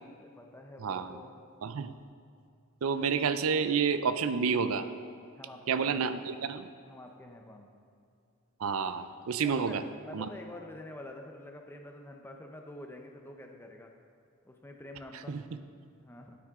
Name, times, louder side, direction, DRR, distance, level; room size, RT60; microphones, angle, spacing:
voice 1, 0.2-1.4 5.3-6.0 6.8-7.7 9.4-13.9 14.4-15.4 16.0-16.4, left 1 dB, 10° left, 2 dB, 0.7 m, -47 dB
voice 2, 0.8-1.2 1.6-1.9 2.8-4.9 5.7-6.7 8.6-9.8 10.1-10.3 15.3-15.4, right 6 dB, 75° right, 11 dB, 0.5 m, -29 dB
9.5 x 9.4 x 3.7 m, 2.4 s
head